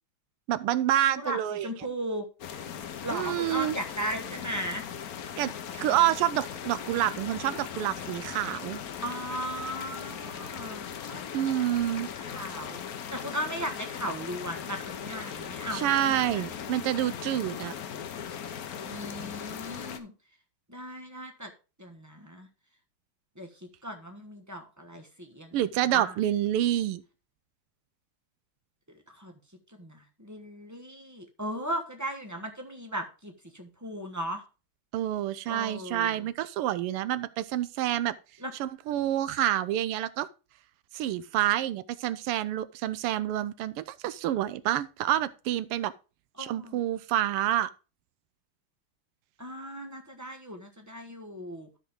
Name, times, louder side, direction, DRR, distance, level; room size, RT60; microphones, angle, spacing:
voice 1, 0.5-1.7 3.1-3.8 5.4-8.8 11.3-12.1 15.7-17.7 25.5-27.0 34.9-38.1 38.6-40.3 40.9-45.9 46.4-47.7, right 12 dB, 90° right, 1.6 m, -28 dB
voice 2, 1.1-2.3 3.0-4.8 9.0-11.2 11.9-12.8 13.1-16.4 18.9-20.1 20.7-21.5 21.8-22.5 23.4-25.6 25.9-26.1 28.9-29.3 29.7-34.4 35.5-36.2 38.4-38.5 46.4-46.8 49.4-51.7, equal, 15° right, 0.7 m, -37 dB
sound 1, 2.4-20.0, left 8 dB, 60° left, 1.0 m, -39 dB
13.0 x 5.3 x 3.6 m
omnidirectional pair, 2.4 m